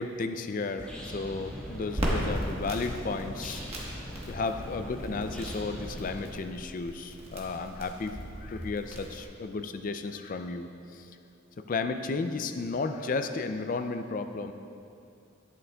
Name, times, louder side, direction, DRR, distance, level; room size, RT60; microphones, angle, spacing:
voice 1, 0.0-3.6 4.3-11.1 11.6-14.5, left 3 dB, 40° left, 8 dB, 0.4 m, -33 dB
sound 1, 0.8-6.3, equal, 5° left, 1.3 m, -41 dB
Crackle, 1.9-9.2, equal, 30° right, 1.2 m, -37 dB
11.0 x 9.2 x 2.3 m, 2.6 s
head